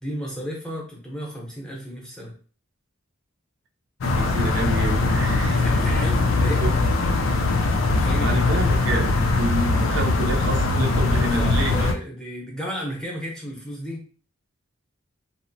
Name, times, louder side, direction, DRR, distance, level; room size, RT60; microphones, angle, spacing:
voice 1, 0.0-2.4 5.5-6.7 7.7-8.3 11.0-14.1, equal, 5° left, -2 dB, 0.7 m, -34 dB
sound 1, 4.0-11.9, left 3 dB, 80° left, 0.4 m, -21 dB
voice 2, 4.2-5.6 6.5-6.7 8.2-11.9, right 2 dB, 65° right, 2 dB, 0.4 m, -28 dB
2.8 x 2.0 x 2.6 m, 0.40 s
head